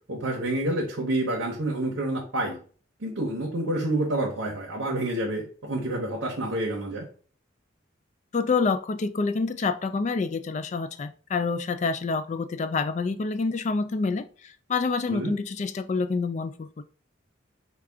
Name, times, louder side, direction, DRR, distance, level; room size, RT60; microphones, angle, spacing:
voice 1, 0.1-2.6 3.0-7.1 15.1-15.3, right 1 dB, 80° right, -1 dB, 0.9 m, -28 dB
voice 2, 8.3-16.8, left 4 dB, 35° left, 11 dB, 0.3 m, -27 dB
4.9 x 2.3 x 3.4 m, 0.42 s
head